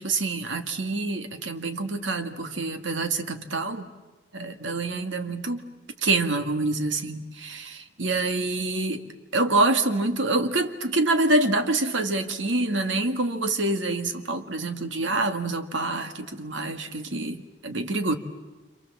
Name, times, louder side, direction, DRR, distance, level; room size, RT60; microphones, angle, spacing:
voice 1, 0.0-3.9 4.3-5.6 6.0-9.0 9.3-18.2, right 2 dB, 80° right, 7 dB, 1.9 m, -26 dB
28.5 x 27.5 x 7.4 m, 1.2 s
head